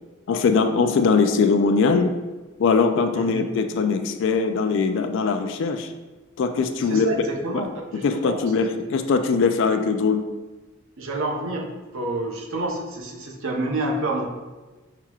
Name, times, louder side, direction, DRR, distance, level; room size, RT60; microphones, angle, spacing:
voice 1, 0.3-2.2 2.6-5.9 6.4-7.1 7.5-7.7 8.0-10.3, left 4 dB, 60° left, 7 dB, 0.3 m, -21 dB
voice 2, 3.1-3.4 6.9-8.5 8.8-8.9 11.0-11.7 11.9-14.3, right 2 dB, 65° right, -1 dB, 0.8 m, -28 dB
5.8 x 2.9 x 2.3 m, 1.2 s
head